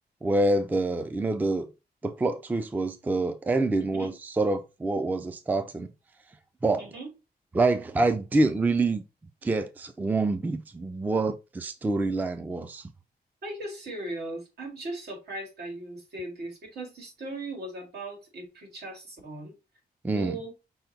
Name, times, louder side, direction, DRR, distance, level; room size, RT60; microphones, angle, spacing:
voice 1, 0.2-1.7 2.0-4.1 4.4-5.9 6.6-6.9 7.5-9.1 9.4-12.9 20.0-20.4, right 2 dB, 10° right, 0.3 m, -26 dB
voice 2, 3.9-4.2 6.8-7.1 13.4-19.5 20.1-20.5, right 2 dB, 85° right, 2.0 m, -38 dB
5.5 x 2.2 x 4.0 m
wide cardioid pair, 180°, 17 cm